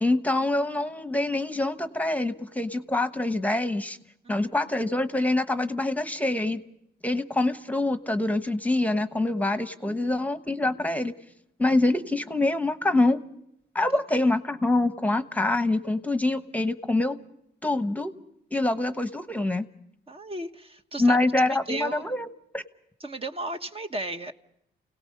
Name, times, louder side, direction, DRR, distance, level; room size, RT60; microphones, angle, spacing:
voice 1, 0.0-4.0 4.3-6.6 7.0-11.1 11.6-13.2 13.7-17.2 17.6-18.1 18.5-19.7 21.0-22.3 22.5-22.6, left 2 dB, 10° left, 10 dB, 1.1 m, -25 dB
voice 2, 20.1-21.2 21.7-22.0 23.0-24.3, right 2 dB, 30° right, 6 dB, 1.1 m, -35 dB
29.0 x 17.5 x 5.4 m, 0.73 s
cardioid pair, 80°, 20 cm